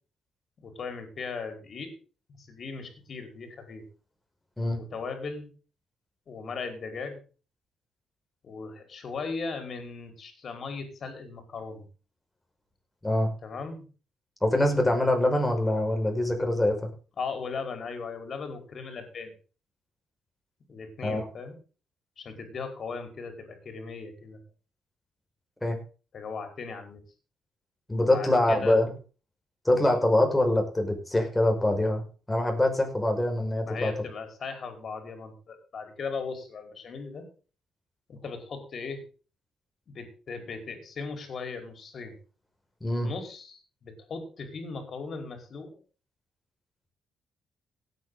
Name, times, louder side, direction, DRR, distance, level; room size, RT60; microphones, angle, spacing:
voice 1, 0.6-1.9 2.3-3.8 4.8-5.5 6.3-7.2 8.4-11.9 13.4-13.8 17.2-19.3 20.7-21.6 22.2-24.4 26.1-27.0 28.1-28.8 33.6-37.3 38.1-39.0 39.9-42.2 43.0-45.7, left 4 dB, 50° left, 6 dB, 4.9 m, -38 dB
voice 2, 14.4-16.8 21.0-21.2 25.6-25.8 27.9-28.9 29.7-32.0 32.3-33.9 42.8-43.1, left 1 dB, 10° left, 3 dB, 5.6 m, -24 dB
17.0 x 9.2 x 4.0 m, 0.36 s
cardioid pair, 90°, 0 cm